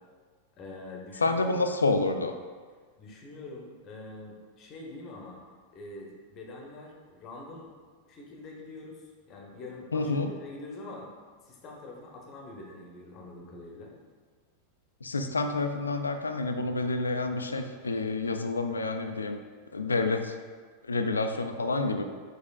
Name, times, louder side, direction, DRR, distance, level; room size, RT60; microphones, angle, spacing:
voice 1, 0.6-1.6 3.0-5.4 5.7-7.7 8.1-10.1 10.4-11.1 11.4-13.9, left 2 dB, 35° left, -1 dB, 0.8 m, -44 dB
voice 2, 1.2-2.3 9.9-10.3 15.0-19.4 19.7-20.3 20.9-22.1, left 3 dB, 75° left, 7 dB, 0.3 m, -28 dB
5.1 x 4.0 x 2.3 m, 1.5 s
figure-of-eight pair, 90°, 0 cm